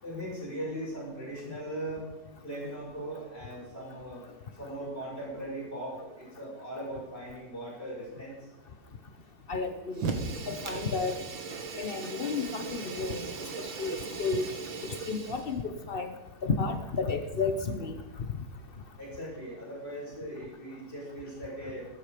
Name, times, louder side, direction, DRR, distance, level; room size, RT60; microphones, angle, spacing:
voice 1, 0.0-2.1 2.4-4.2 4.6-8.3 19.0-21.9, right 1 dB, 25° left, -5 dB, 7.1 m, -39 dB
voice 2, 9.5-10.0 10.5-11.1 11.8-13.2 13.8-14.4 15.1-15.6 15.9-16.1 16.4-17.9, left 4 dB, 90° left, 8 dB, 0.5 m, -31 dB
Fire, 9.9-15.6, right 4 dB, 70° right, 2.2 m, -37 dB
14.0 x 13.5 x 5.0 m, 1.0 s
omnidirectional pair, 2.3 m